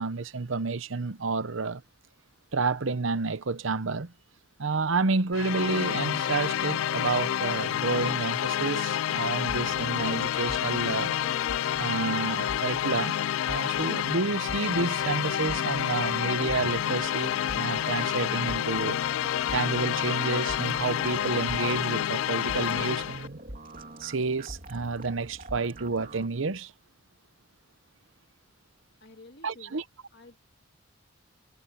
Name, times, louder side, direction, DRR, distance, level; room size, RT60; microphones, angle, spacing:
voice 1, 0.0-1.8 2.5-4.1 4.6-11.1 11.8-13.2 13.5-19.0 19.5-23.4 24.0-26.7 29.4-29.8, right 3 dB, 70° right, 0.9 m, -30 dB
sound 1, 5.3-23.3, left 10 dB, 80° left, 0.3 m, -29 dB
sound 2, 9.4-26.3, right 1 dB, 45° right, 3.0 m, -45 dB
voice 2, 29.0-29.8 30.1-30.5, left 2 dB, 50° left, 2.7 m, -51 dB
head